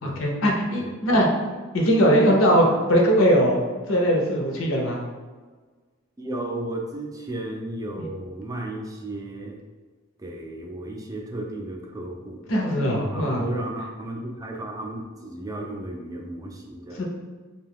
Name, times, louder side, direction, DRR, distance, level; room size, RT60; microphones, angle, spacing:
voice 1, 0.0-1.3 1.7-3.6 3.9-5.0 8.0-8.1 12.5-13.4 17.0-17.1, equal, 80° left, 0 dB, 0.7 m, -20 dB
voice 2, 6.2-9.6 10.2-12.4 13.1-17.0, right 1 dB, 20° right, 1 dB, 0.4 m, -34 dB
2.6 x 2.3 x 3.4 m, 1.4 s
head